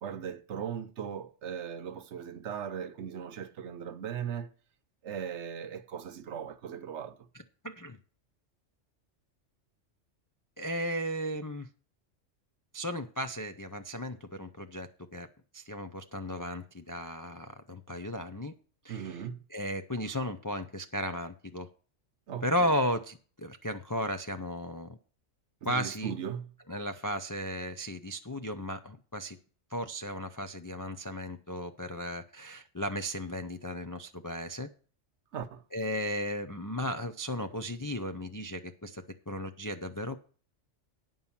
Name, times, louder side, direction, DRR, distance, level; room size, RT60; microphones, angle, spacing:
voice 1, 0.0-4.5 5.0-7.2 18.9-19.4 22.3-22.7 25.6-26.5 35.3-35.6, right 8 dB, 65° right, 1.0 m, -38 dB
voice 2, 7.6-8.0 10.6-11.7 12.7-15.3 15.5-18.5 18.8-19.2 19.5-21.7 22.4-25.0 25.7-26.1 26.7-29.4 29.7-34.7 35.7-40.2, equal, 30° left, 0.3 m, -35 dB
9.5 x 5.5 x 7.2 m
omnidirectional pair, 1.3 m